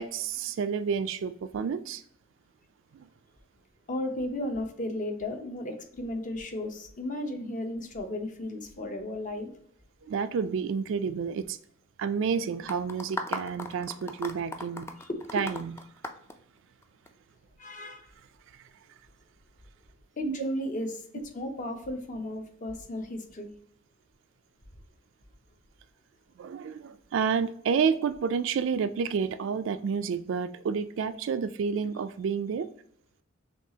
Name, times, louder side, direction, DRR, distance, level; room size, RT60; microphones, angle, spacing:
voice 1, 0.0-2.0 2.9-3.1 10.1-11.6 12.0-14.8 15.3-15.7 20.2-20.4 26.4-32.7, right 6 dB, 65° right, 0.3 m, -30 dB
voice 2, 3.9-9.5 15.0-15.4 17.6-18.1 20.2-23.5, left 1 dB, 40° left, 0.7 m, -34 dB
sound 1, 12.7-17.1, left 2 dB, 15° left, 0.3 m, -37 dB
6.1 x 2.4 x 2.8 m
head